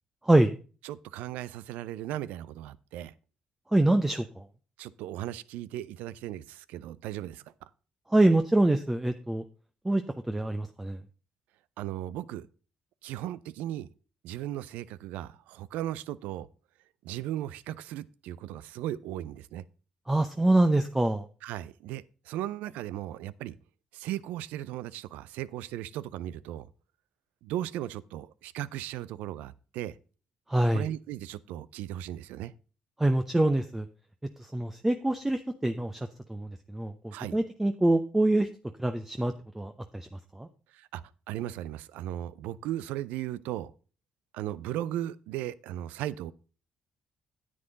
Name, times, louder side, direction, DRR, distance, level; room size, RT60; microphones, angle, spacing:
voice 1, 0.8-3.1 4.8-7.4 11.8-12.5 13.0-13.9 14.2-16.5 17.0-19.6 21.4-23.5 23.9-26.7 27.4-29.9 30.7-32.5 37.1-37.4 40.7-41.0 41.3-43.7 44.3-46.3, right 13 dB, 85° right, 0.4 m, -36 dB
voice 2, 3.7-4.4 8.1-9.4 9.8-10.0 10.3-11.0 20.1-21.3 30.5-30.9 33.0-33.9 34.5-36.0 36.3-38.5 38.8-40.1 40.3-40.5, right 1 dB, 10° right, 0.8 m, -25 dB
9.6 x 7.8 x 3.9 m
supercardioid pair, 65°, 3 cm